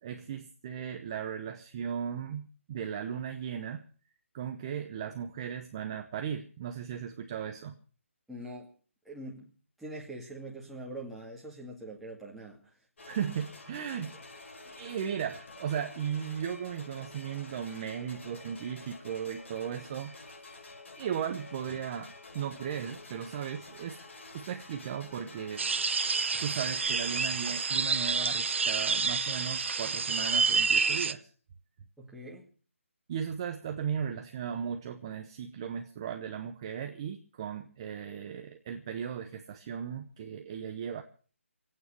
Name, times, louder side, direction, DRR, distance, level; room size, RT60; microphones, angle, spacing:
voice 1, 0.0-3.8 4.3-7.8 13.1-14.1 14.7-20.1 21.0-24.0 24.3-25.6 26.3-31.3 33.1-41.0, right 8 dB, 25° right, 6 dB, 0.9 m, -36 dB
voice 2, 8.3-8.7 9.1-9.5 9.8-12.6 32.0-32.5, right 1 dB, ahead, -5 dB, 2.3 m, -43 dB
sound 1, 13.0-29.1, left 3 dB, 60° left, 5.4 m, -49 dB
sound 2, 25.6-31.1, right 4 dB, 60° right, 0.9 m, -29 dB
22.0 x 9.0 x 6.6 m, 0.41 s
hypercardioid pair, 165°, 7 cm